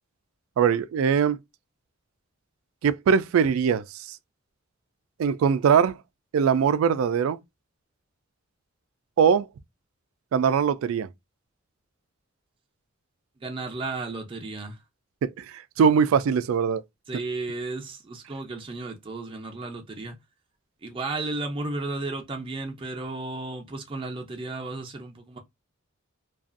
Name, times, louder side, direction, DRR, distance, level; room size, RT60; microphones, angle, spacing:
voice 1, 0.6-1.4 2.8-4.2 5.2-6.0 6.3-7.4 9.2-9.5 10.3-11.1 15.2-15.4 15.8-16.8, right 7 dB, 90° right, 0.3 m, -21 dB
voice 2, 13.4-14.8 17.1-20.2 20.8-25.4, right 2 dB, 25° right, 0.5 m, -34 dB
2.5 x 2.3 x 2.4 m
head